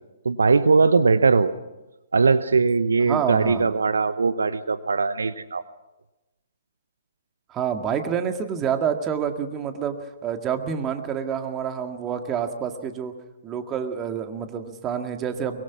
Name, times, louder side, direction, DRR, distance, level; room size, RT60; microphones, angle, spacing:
voice 1, 0.2-1.5 2.1-5.6, right 4 dB, 75° right, 14 dB, 0.8 m, -20 dB
voice 2, 3.1-3.7 7.5-10.0 10.2-13.1 13.4-15.6, right 8 dB, 20° right, 6 dB, 2.0 m, -28 dB
23.5 x 22.0 x 6.1 m, 1.0 s
figure-of-eight pair, 125°, 0 cm